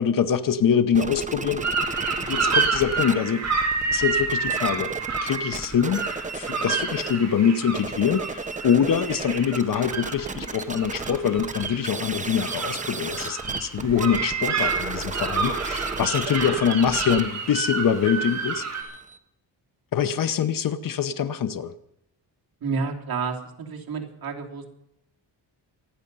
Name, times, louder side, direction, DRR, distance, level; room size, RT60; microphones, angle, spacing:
voice 1, 0.0-1.7 2.2-3.5 3.9-4.9 5.2-6.1 6.3-18.7 19.9-21.7, left 7 dB, 50° left, 0.9 m, -24 dB
sound 1, 0.9-3.1 3.4-7.2 7.6-19.2, right 3 dB, 15° right, 0.9 m, -34 dB
sound 2, 1.6-18.8, right 4 dB, 35° right, 5.2 m, -29 dB
voice 2, 22.6-24.7, right 5 dB, 55° right, 3.3 m, -30 dB
26.5 x 9.9 x 5.5 m
wide cardioid pair, 155°, 44 cm